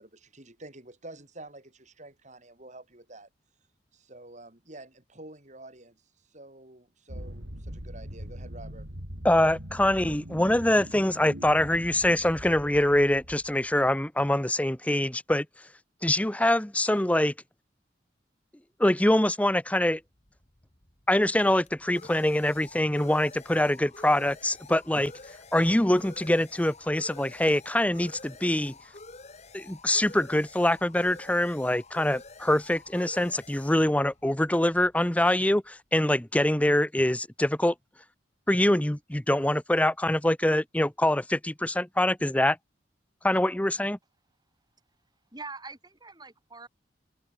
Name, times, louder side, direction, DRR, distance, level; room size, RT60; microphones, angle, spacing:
voice 1, 0.0-3.3 3.9-8.9, right 2 dB, 40° right, 6.6 m, -48 dB
sound 1, 7.1-13.9, equal, 75° right, 7.6 m, -42 dB
voice 2, 9.2-15.5 16.0-17.3 18.8-20.0 21.1-25.1 25.5-28.7 29.5-37.7 38.5-42.6 43.2-44.0, left 1 dB, 10° left, 0.7 m, -24 dB
sound 2, 20.0-35.4, left 3 dB, 35° left, 3.1 m, -49 dB
voice 3, 45.3-46.7, right 3 dB, 20° right, 5.3 m, -43 dB
head